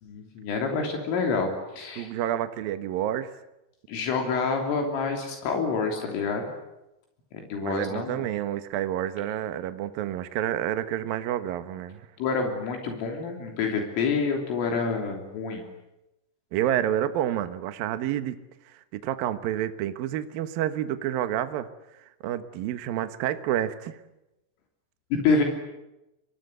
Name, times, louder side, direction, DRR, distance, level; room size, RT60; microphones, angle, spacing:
voice 1, 0.0-2.1 3.9-6.5 7.5-8.3 12.2-15.7 25.1-25.4, left 4 dB, 75° left, 3 dB, 5.7 m, -27 dB
voice 2, 2.0-3.3 7.6-12.0 16.5-18.4 18.9-21.7 22.2-24.0, right 11 dB, 75° right, 10 dB, 2.1 m, -29 dB
30.0 x 24.0 x 8.0 m, 0.92 s
omnidirectional pair, 6.0 m